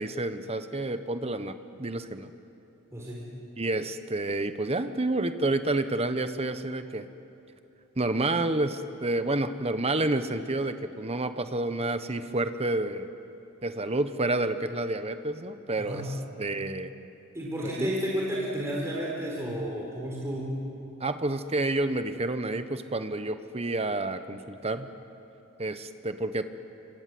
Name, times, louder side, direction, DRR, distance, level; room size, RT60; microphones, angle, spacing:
voice 1, 0.0-2.3 3.6-7.1 8.0-13.1 13.6-16.0 16.4-16.9 17.8-17.9 21.0-24.9 25.6-26.4, right 2 dB, 30° right, 10 dB, 1.1 m, -29 dB
voice 2, 2.9-3.3 15.8-16.2 17.3-20.6, equal, 15° right, -4 dB, 4.5 m, -32 dB
29.0 x 26.0 x 7.8 m, 2.8 s
head